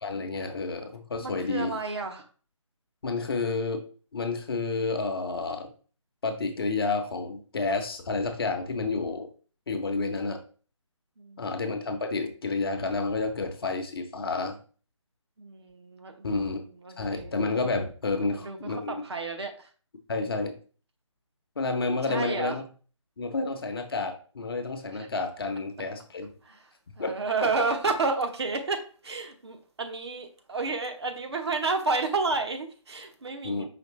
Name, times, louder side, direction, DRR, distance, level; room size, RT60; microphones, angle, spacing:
voice 1, 0.0-1.8 3.0-3.8 4.1-5.7 6.2-9.3 9.7-10.4 11.4-14.6 16.2-16.6 17.0-19.0 20.1-20.5 21.6-22.6 23.2-26.3 27.0-27.1 33.4-33.7, left 3 dB, 45° left, 5 dB, 0.8 m, -30 dB
voice 2, 1.2-2.3 11.2-11.4 15.4-16.5 16.8-17.3 18.2-19.7 22.1-22.6 26.4-33.7, right 3 dB, 55° right, 5 dB, 0.9 m, -31 dB
5.1 x 3.1 x 3.0 m, 0.39 s
figure-of-eight pair, 155°, 16 cm